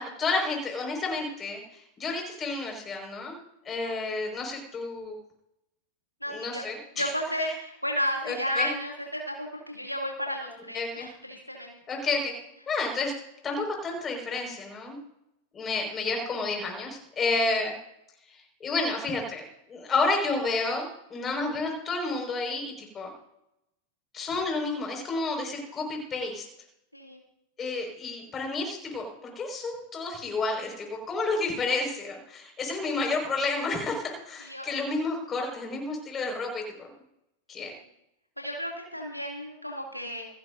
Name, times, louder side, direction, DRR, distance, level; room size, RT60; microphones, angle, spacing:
voice 1, 0.0-1.6 2.0-3.3 3.6-5.1 6.3-7.1 8.2-8.7 10.7-11.1 11.9-12.3 12.7-13.1 13.4-15.0 15.5-17.7 18.6-19.4 19.7-23.1 24.1-26.4 27.6-29.1 29.4-36.9 37.5-37.8, left 3 dB, 20° left, 2 dB, 5.6 m, -30 dB
voice 2, 3.8-4.1 6.2-6.6 6.9-11.7 17.4-17.6 26.9-27.2 34.4-34.7 37.6-37.8 38.4-40.3, equal, 90° left, -1 dB, 2.7 m, -33 dB
27.5 x 11.0 x 2.7 m, 0.79 s
figure-of-eight pair, 90°, 0 cm